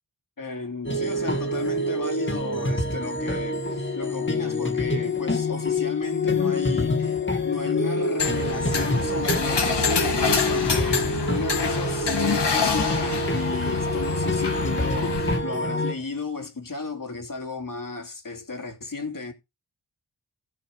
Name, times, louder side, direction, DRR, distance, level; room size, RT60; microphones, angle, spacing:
voice 1, 0.4-7.2 7.4-19.3, left 3 dB, 55° left, 2.9 m, -33 dB
sound 1, 0.8-15.9, left 1 dB, 30° left, 2.3 m, -26 dB
sound 2, 8.2-15.4, left 6 dB, 85° left, 2.1 m, -26 dB
16.5 x 5.9 x 4.9 m
wide cardioid pair, 90°, 40 cm